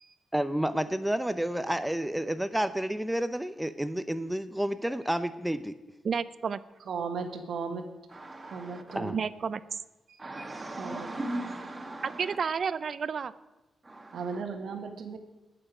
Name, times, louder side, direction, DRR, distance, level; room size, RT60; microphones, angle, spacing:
voice 1, 0.3-5.7 8.9-9.2, right 1 dB, 5° right, 12 dB, 0.6 m, -30 dB
voice 2, 6.0-6.6 9.1-9.8 12.0-13.3, right 6 dB, 55° right, 16 dB, 0.5 m, -31 dB
voice 3, 6.9-7.9 8.4-9.2 10.1-10.2 10.8-11.1 14.1-15.2, right 5 dB, 75° right, 6 dB, 1.5 m, -36 dB
voice 4, 8.1-9.0 10.2-12.4 13.8-14.4, right 1 dB, 25° right, 3 dB, 1.8 m, -38 dB
20.5 x 6.9 x 4.9 m, 1.1 s
cardioid pair, 80°, 0 cm